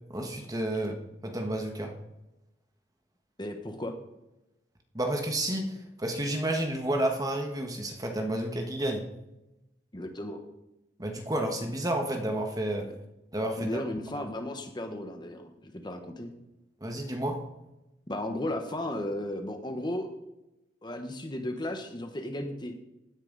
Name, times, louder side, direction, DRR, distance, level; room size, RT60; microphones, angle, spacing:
voice 1, 0.1-1.0 1.2-1.9 4.9-9.0 11.0-12.9 13.3-13.8 16.8-17.4, right 1 dB, 20° right, 3 dB, 1.5 m, -30 dB
voice 2, 3.4-3.9 9.9-10.4 13.6-16.4 18.1-20.1 20.8-22.7, left 1 dB, 25° left, 5 dB, 1.2 m, -35 dB
16.5 x 9.8 x 4.1 m, 0.94 s
head